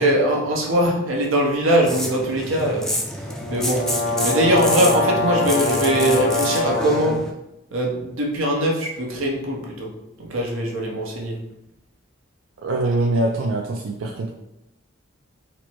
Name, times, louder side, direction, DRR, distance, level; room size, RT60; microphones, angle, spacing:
voice 1, 0.0-2.9 3.5-3.8 4.2-7.2 7.7-9.9 10.2-11.4, right 1 dB, 85° right, 0 dB, 1.0 m, -21 dB
sound 1, 1.8-7.3, equal, 5° left, 0.4 m, -29 dB
sound 2, 3.3-7.2, left 2 dB, 50° left, 0.7 m, -24 dB
voice 2, 12.6-14.3, right 2 dB, 65° right, 1 dB, 0.4 m, -23 dB
4.2 x 2.1 x 4.4 m, 0.86 s
head